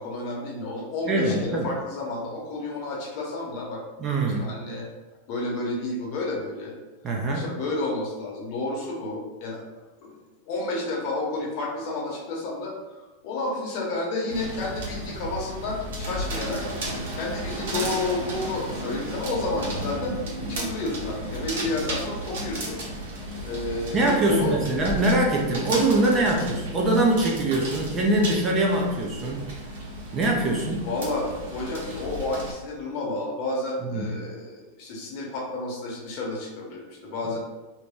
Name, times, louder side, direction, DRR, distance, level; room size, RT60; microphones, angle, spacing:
voice 1, 0.0-3.8 4.4-4.9 5.3-6.8 7.3-9.6 10.0-10.1 10.5-12.8 13.2-16.6 17.1-20.2 20.5-22.8 23.1-24.6 30.8-37.4, left 2 dB, 40° left, -2 dB, 0.9 m, -31 dB
voice 2, 1.1-1.7 4.0-4.5 7.0-7.4 23.9-29.4 30.1-30.9 33.8-34.1, right 1 dB, 20° right, -1 dB, 0.5 m, -23 dB
sound 1, 14.3-32.5, right 1 dB, 80° right, 1.1 m, -34 dB
3.0 x 2.7 x 3.5 m, 1.1 s
supercardioid pair, 165°, 0 cm